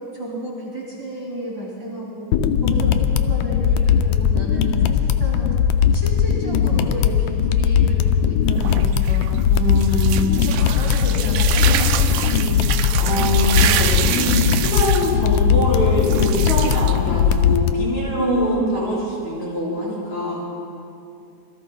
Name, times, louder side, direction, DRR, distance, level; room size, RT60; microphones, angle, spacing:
voice 1, 0.1-2.3 2.6-5.5 5.9-9.2 10.4-13.3 18.1-18.7, right 1 dB, 30° right, -6 dB, 3.1 m, -31 dB
sound 1, 2.3-17.7, left 8 dB, 80° left, 1.8 m, -19 dB
sound 2, 8.4-17.6, right 11 dB, 90° right, 1.5 m, -27 dB
voice 2, 9.5-10.5 13.0-20.4, left 1 dB, 60° left, -6 dB, 6.0 m, -24 dB
27.0 x 23.0 x 2.3 m, 2.5 s
omnidirectional pair, 3.8 m